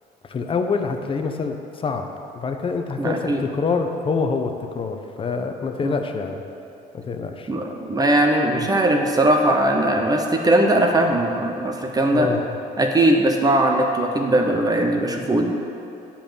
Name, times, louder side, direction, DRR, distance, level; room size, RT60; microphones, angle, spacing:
voice 1, 0.3-2.1 2.3-6.4 6.9-7.5 8.5-8.7 12.1-12.6, left 4 dB, 30° left, 5 dB, 0.9 m, -26 dB
voice 2, 3.0-3.4 5.8-6.0 7.5-12.3 12.8-15.5, right 1 dB, 20° right, 2 dB, 1.0 m, -19 dB
9.9 x 5.8 x 7.1 m, 2.7 s
cardioid pair, 110°, 17 cm